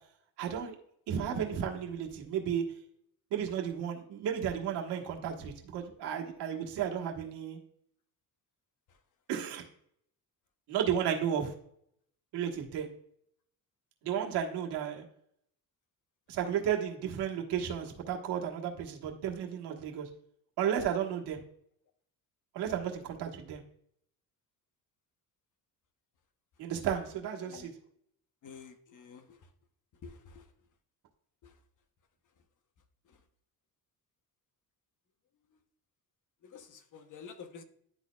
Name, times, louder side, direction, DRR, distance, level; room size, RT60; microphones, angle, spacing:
voice 1, 0.4-0.7 1.1-2.6 3.3-7.6 9.3-9.6 10.7-11.5 12.3-12.9 14.0-15.0 16.3-20.1 20.6-21.4 22.5-23.6 26.6-27.7, right 8 dB, 85° right, 1.5 m, -33 dB
voice 2, 27.4-27.7 28.4-29.4 30.0-30.5 31.4-31.5 33.1-33.2 36.4-37.6, left 5 dB, 50° left, 1.0 m, -49 dB
11.5 x 4.1 x 2.3 m
cardioid pair, 120°, 39 cm